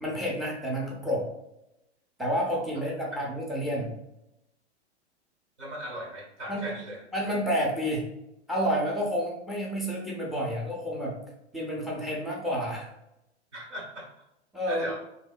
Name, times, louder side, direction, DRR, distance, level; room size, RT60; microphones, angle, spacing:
voice 1, 0.0-1.3 2.2-4.0 6.5-6.7 7.1-8.1 8.5-11.2 11.5-12.9 14.5-14.9, equal, ahead, -2 dB, 0.4 m, -30 dB
voice 2, 5.6-7.0 13.5-14.1 14.7-14.9, equal, 90° right, -2 dB, 1.1 m, -38 dB
2.7 x 2.1 x 2.3 m, 0.86 s
hypercardioid pair, 110°, 34 cm